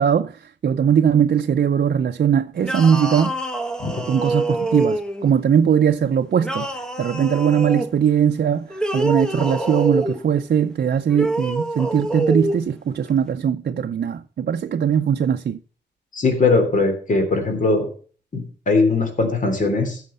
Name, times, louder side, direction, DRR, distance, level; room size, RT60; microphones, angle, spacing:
voice 1, 0.0-3.4 4.1-15.6, right 8 dB, 60° right, 0.6 m, -20 dB
sound 1, 2.6-5.3 6.4-7.9 8.7-10.2 11.1-12.6, right 2 dB, 5° left, 1.1 m, -25 dB
voice 2, 16.1-17.9 18.3-20.0, left 3 dB, 45° left, 3.3 m, -20 dB
15.0 x 6.5 x 5.5 m
wide cardioid pair, 150°, 18 cm